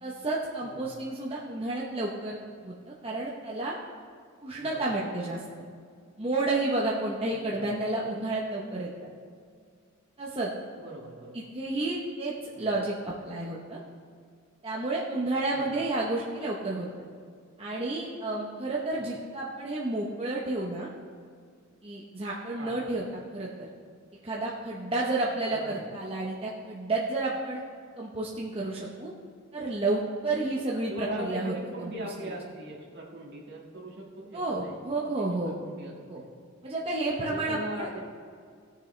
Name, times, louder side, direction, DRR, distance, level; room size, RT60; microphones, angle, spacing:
voice 1, 0.0-3.7 4.4-5.7 6.2-9.1 10.2-10.5 11.3-13.8 14.6-16.9 17.6-20.9 21.8-23.0 23.3-23.7 24.2-27.6 28.0-29.1 29.5-31.5 31.8-31.9 34.3-35.5 36.1-36.2 36.6-37.9, right 2 dB, 25° right, -4 dB, 0.9 m, -31 dB
voice 2, 0.6-1.1 4.6-4.9 7.3-7.8 10.8-11.5 12.5-12.7 15.5-15.7 19.0-19.1 22.6-23.1 25.5-25.8 30.9-34.8 35.4-36.3 37.2-38.1, right 1 dB, 55° right, -2 dB, 2.0 m, -40 dB
17.5 x 6.9 x 3.3 m, 2.1 s
head